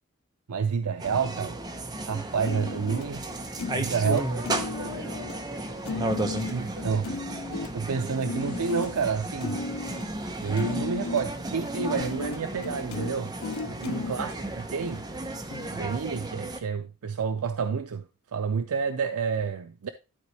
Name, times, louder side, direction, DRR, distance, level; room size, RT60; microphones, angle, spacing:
voice 1, 0.5-1.6 2.0-3.2 3.7-4.2 6.5-7.1 7.7-10.0 10.4-13.3 13.6-15.0 15.7-18.0 18.3-19.9, right 6 dB, 85° right, 0.5 m, -29 dB
sound 1, 1.0-16.6, right 2 dB, 20° right, 0.8 m, -34 dB
Guitar rap tune, 2.4-14.2 14.9-15.0 15.5-15.7, left 3 dB, 70° left, 0.5 m, -35 dB
voice 2, 4.0-7.0 14.0-15.2, right 1 dB, 55° right, 4.0 m, -45 dB
sound 2, 8.1-9.4 10.1-11.9 13.0-13.7, left 3 dB, 40° left, 1.5 m, -55 dB
12.5 x 4.1 x 3.2 m
head